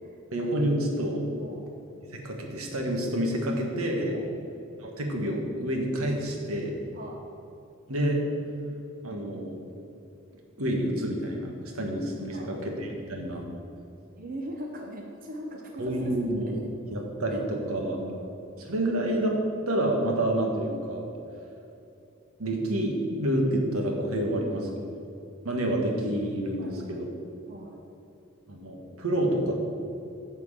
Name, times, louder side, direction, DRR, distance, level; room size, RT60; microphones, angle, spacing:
voice 1, 0.3-1.2 2.2-4.1 4.8-6.8 7.9-8.2 9.0-9.5 10.6-11.5 11.7-13.4 15.8-16.5 16.9-18.0 18.6-19.4 19.7-21.0 22.4-24.6 25.4-27.1 28.5-29.6, right 1 dB, 80° right, 1 dB, 1.5 m, -28 dB
voice 2, 14.2-16.3 17.3-17.4 17.8-18.3 24.3-25.0 26.6-27.1 27.5-27.8, right 1 dB, 40° right, 1 dB, 0.7 m, -41 dB
9.3 x 4.6 x 7.3 m, 2.8 s
head